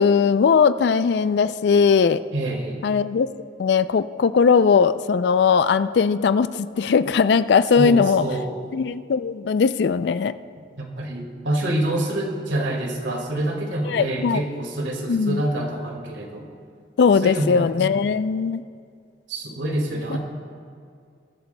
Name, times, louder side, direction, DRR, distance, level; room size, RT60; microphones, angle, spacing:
voice 1, 0.0-2.2 2.8-3.3 3.6-8.2 8.7-10.3 13.9-14.4 15.1-15.4 17.0-18.6 20.1-20.2, left 6 dB, 65° left, 14 dB, 0.3 m, -19 dB
voice 2, 2.3-2.8 7.8-8.5 10.8-16.5 17.2-17.6 17.9-18.1 19.3-20.2, right 1 dB, 85° right, 1 dB, 2.0 m, -26 dB
21.5 x 12.0 x 2.2 m, 2.3 s
head